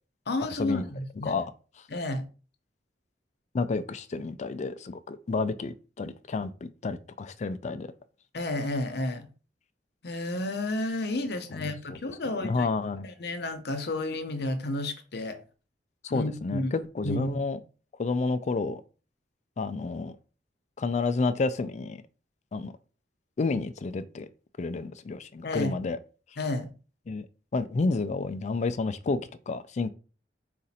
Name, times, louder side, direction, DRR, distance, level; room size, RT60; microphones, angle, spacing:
voice 1, 0.3-1.4 1.9-2.2 8.3-9.3 10.0-12.7 13.0-15.4 16.1-16.7 17.0-17.4 25.4-25.7 26.4-26.7, left 2 dB, 65° left, 0.8 m, -31 dB
voice 2, 3.5-7.9 11.5-12.0 12.4-13.1 16.0-17.6 18.0-18.8 19.6-20.2 20.8-22.0 22.5-22.7 23.4-24.3 24.6-26.0 27.1-27.3 27.5-29.9, left 3 dB, 40° left, 0.4 m, -30 dB
5.0 x 2.5 x 4.1 m
head